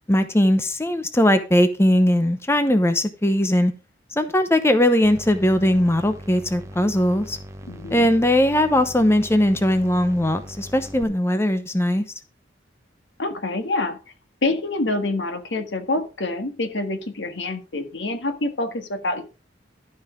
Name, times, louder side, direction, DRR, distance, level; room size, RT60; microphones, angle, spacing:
voice 1, 0.1-3.7 4.1-7.4 7.9-12.0, left 1 dB, 15° left, 9 dB, 0.8 m, -19 dB
sound 1, 5.0-11.0, equal, 15° right, 1.0 m, -40 dB
voice 2, 7.7-8.1 13.2-14.0 14.4-19.2, left 2 dB, 85° left, 8 dB, 1.6 m, -26 dB
12.5 x 5.6 x 5.0 m, 0.32 s
head